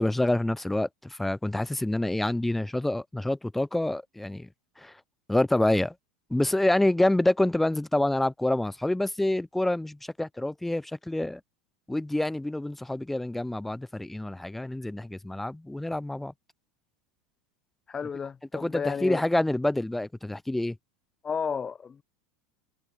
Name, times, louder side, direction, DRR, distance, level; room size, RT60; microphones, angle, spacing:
voice 1, 0.0-4.5 4.8-4.9 5.3-5.9 6.3-11.4 11.9-16.3 18.5-20.8, left 1 dB, 5° left, 1.3 m, -27 dB
voice 2, 17.9-19.2 21.2-22.0, left 6 dB, 25° left, 1.8 m, -32 dB
hypercardioid pair, 90°, 3 cm